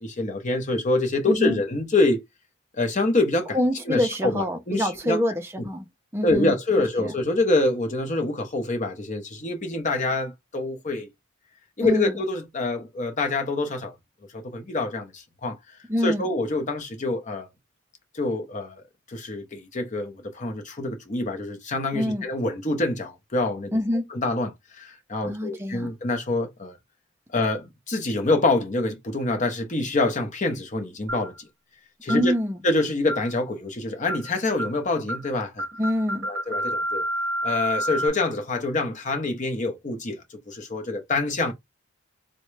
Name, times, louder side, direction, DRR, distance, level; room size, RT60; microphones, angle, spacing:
voice 1, 0.0-2.2 2.8-3.6 3.9-5.2 5.6-5.7 6.2-11.1 11.8-13.9 14.3-15.6 16.0-17.5 18.1-18.8 19.1-23.8 24.1-24.5 24.8-26.7 27.3-31.3 32.0-32.3 32.6-35.7 36.2-37.0 37.4-41.5, left 2 dB, 35° left, 0.7 m, -26 dB
voice 2, 1.3-1.6 3.5-5.9 6.1-7.1 11.8-12.2 15.9-16.3 21.9-22.2 23.7-24.1 25.2-25.9 32.1-32.6 35.8-36.3, left 1 dB, 10° right, 0.5 m, -26 dB
sound 1, 31.1-31.4 32.1-32.3 33.1-33.4 34.1-34.3 34.6-34.8 35.1-35.3 35.6-38.1, right 1 dB, 55° right, 0.7 m, -29 dB
3.6 x 2.1 x 3.2 m
head